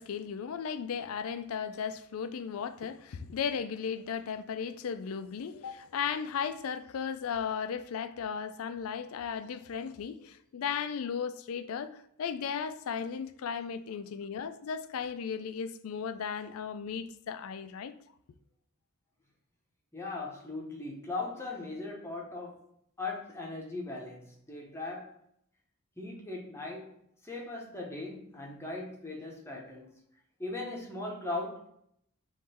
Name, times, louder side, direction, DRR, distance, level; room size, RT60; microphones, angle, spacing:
voice 1, 0.0-17.9, left 7 dB, 70° left, 0.4 m, -36 dB
voice 2, 19.9-22.7 23.0-25.1 26.0-26.9 27.2-30.0 30.4-31.7, left 2 dB, 10° left, 0.8 m, -39 dB
3.7 x 3.1 x 4.2 m
head